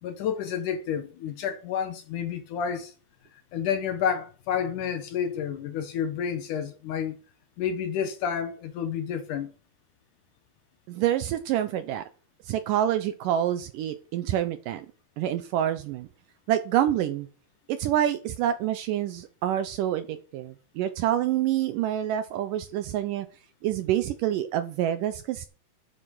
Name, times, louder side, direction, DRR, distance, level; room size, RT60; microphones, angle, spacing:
voice 1, 0.0-2.9 3.3-7.2 7.6-9.5, left 8 dB, 70° left, 2.1 m, -30 dB
voice 2, 10.9-12.1 12.5-14.9 15.2-16.1 16.5-17.3 17.7-23.3 23.6-25.5, right 11 dB, 80° right, 2.0 m, -27 dB
8.8 x 7.8 x 6.2 m
omnidirectional pair, 4.4 m